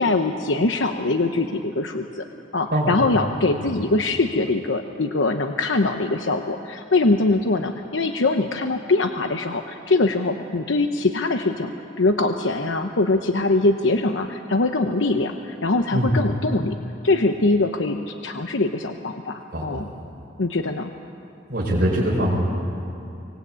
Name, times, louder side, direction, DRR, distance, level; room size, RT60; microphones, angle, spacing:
voice 1, 0.0-2.2 2.5-11.7 12.0-16.8 17.0-19.9 20.4-20.9, left 2 dB, 85° left, 6 dB, 1.0 m, -22 dB
voice 2, 21.5-22.4, equal, 55° right, -5 dB, 4.5 m, -22 dB
25.0 x 19.0 x 8.7 m, 2.7 s
head